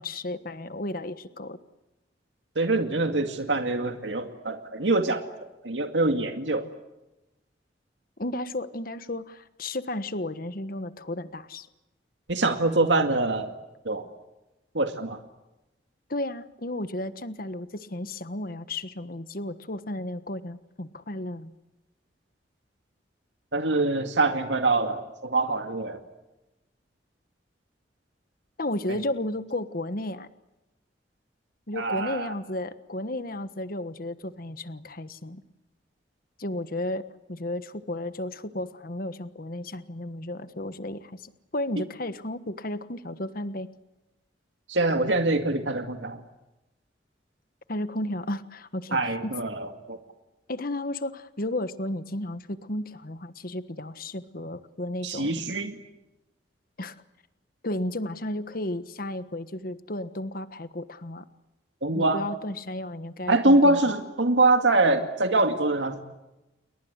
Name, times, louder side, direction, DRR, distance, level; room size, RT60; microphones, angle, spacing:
voice 1, 0.0-1.6 8.2-11.7 16.1-21.5 28.6-30.3 31.7-35.4 36.4-43.7 47.7-49.3 50.5-55.4 56.8-56.9 57.6-61.2 61.9-63.8, left 1 dB, 50° left, 12 dB, 1.4 m, -33 dB
voice 2, 2.6-5.2 5.6-6.7 12.3-13.5 13.9-14.1 14.7-15.2 23.5-26.0 31.7-32.3 44.7-46.2 48.9-50.0 55.0-55.8 61.8-62.2 63.3-66.0, right 2 dB, 90° right, 6 dB, 2.2 m, -24 dB
30.0 x 22.0 x 8.2 m, 0.98 s
head